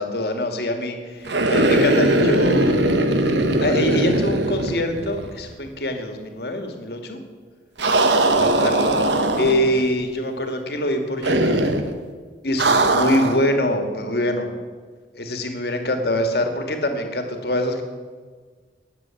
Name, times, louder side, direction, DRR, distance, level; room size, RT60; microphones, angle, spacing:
voice 1, 0.0-2.8 3.6-7.2 8.2-8.9 9.3-11.6 12.4-14.5 15.1-17.8, left 1 dB, 60° left, 5 dB, 2.0 m, -24 dB
sound 1, 1.2-5.4 5.7-5.8 7.8-9.8 11.2-11.9 12.6-13.4, right 1 dB, 90° right, 1.5 m, -20 dB
19.0 x 7.4 x 9.1 m, 1.5 s
head